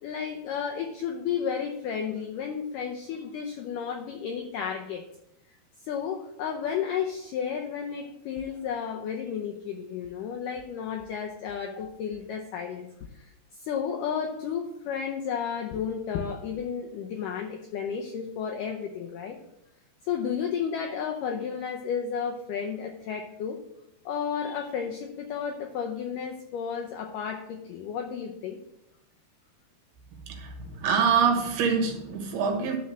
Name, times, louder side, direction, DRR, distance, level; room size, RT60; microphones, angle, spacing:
voice 1, 0.0-5.0 5.9-12.9 13.1-19.4 20.0-23.6 24.1-28.6, left 7 dB, 80° left, 3 dB, 1.9 m, -32 dB
voice 2, 30.3-32.8, right 6 dB, 75° right, 3 dB, 3.3 m, -25 dB
11.5 x 4.3 x 6.2 m, 0.83 s
omnidirectional pair, 4.7 m